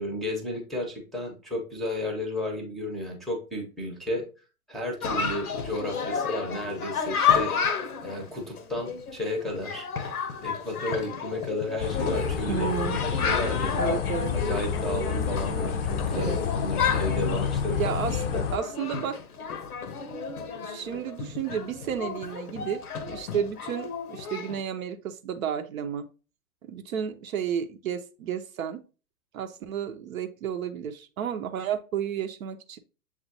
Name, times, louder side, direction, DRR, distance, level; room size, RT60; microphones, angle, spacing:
voice 1, 0.0-4.2 4.7-7.5 8.0-12.7 13.0-13.9 14.3-18.0 18.2-18.4, left 1 dB, ahead, 0.7 m, -33 dB
Chatter, 5.0-24.6, left 6 dB, 80° left, 0.8 m, -31 dB
sound 1, 11.8-18.6, left 7 dB, 45° left, 0.5 m, -29 dB
voice 2, 12.5-13.0 13.7-14.3 16.1-16.4 17.7-18.2 18.5-19.2 20.6-26.1 26.6-28.8 29.3-32.8, right 8 dB, 65° right, 0.7 m, -32 dB
7.2 x 2.5 x 2.7 m
hypercardioid pair, 110°, 44 cm